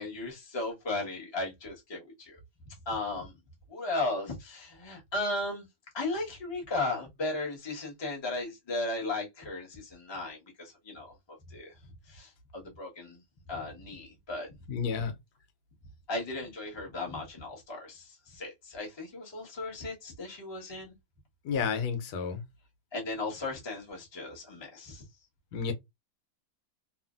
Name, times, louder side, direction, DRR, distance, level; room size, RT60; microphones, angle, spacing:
voice 1, 0.0-2.4 2.6-3.3 3.7-5.7 5.9-11.1 11.5-11.7 12.1-13.2 13.5-14.5 16.1-20.9 22.9-25.0, left 2 dB, 20° left, 0.8 m, -36 dB
voice 2, 14.7-15.1 21.4-22.4 25.5-25.7, left 6 dB, 85° left, 1.4 m, -31 dB
3.0 x 2.5 x 2.4 m
omnidirectional pair, 2.0 m